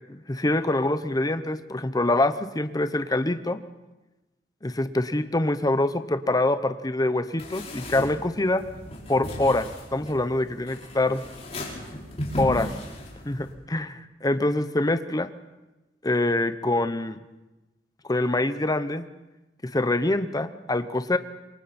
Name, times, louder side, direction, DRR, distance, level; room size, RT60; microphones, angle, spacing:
voice 1, 0.1-3.6 4.6-8.6 9.1-11.2 12.4-12.7 13.2-15.3 16.0-17.2 18.1-19.1 19.6-21.2, left 2 dB, 20° left, 11 dB, 0.9 m, -25 dB
sound 1, 7.4-13.5, left 1 dB, 40° left, 5.4 m, -36 dB
27.0 x 23.5 x 4.3 m, 1.0 s
head